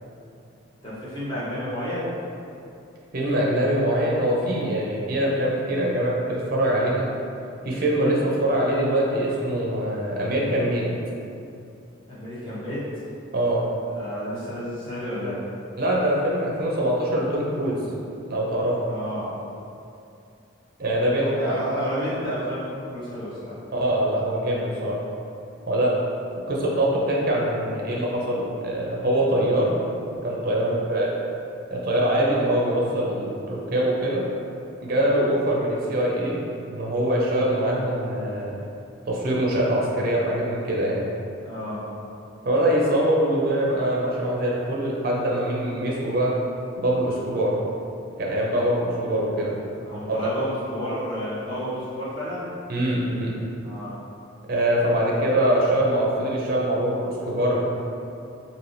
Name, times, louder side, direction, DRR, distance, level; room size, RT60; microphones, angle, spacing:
voice 1, 0.8-2.0 12.1-12.9 14.0-15.4 18.8-19.3 21.2-23.5 30.5-30.7 41.4-41.8 49.7-52.4 53.6-54.0, equal, 25° left, -11 dB, 0.8 m, -31 dB
voice 2, 3.1-7.1 7.6-10.9 13.3-13.6 15.8-17.8 18.3-18.8 20.8-21.5 23.7-25.0 25.7-25.9 26.5-29.8 30.2-31.1 31.7-34.3 34.8-36.4 36.7-38.5 39.0-41.1 42.5-46.4 46.7-47.5 48.2-49.6 50.1-50.2 52.7-53.3 54.5-57.7, right 1 dB, 45° right, -3 dB, 0.5 m, -23 dB
3.3 x 2.6 x 2.6 m, 2.6 s
head